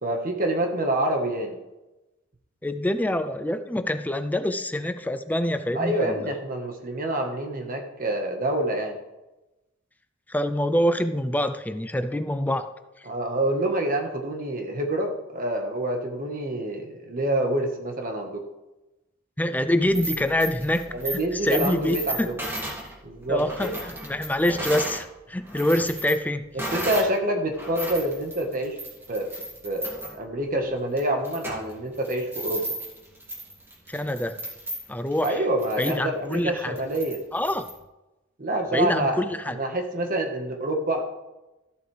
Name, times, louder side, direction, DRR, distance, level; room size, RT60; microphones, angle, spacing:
voice 1, 0.0-1.6 5.7-9.0 13.0-18.4 20.9-22.3 23.0-23.8 26.5-28.8 29.1-29.3 29.6-32.6 35.2-37.2 38.4-39.2 39.4-41.0, right 1 dB, 45° right, 3 dB, 1.4 m, -27 dB
voice 2, 2.6-6.3 10.3-12.7 19.4-22.3 23.3-26.5 33.9-34.4 34.9-35.4 35.8-36.8 37.3-37.7 38.7-39.6, left 1 dB, 10° left, 10 dB, 0.5 m, -26 dB
sound 1, 19.8-25.0 25.4-27.2 27.5-37.8, right 1 dB, 10° right, 2.1 m, -35 dB
14.0 x 8.1 x 3.4 m, 1.0 s
head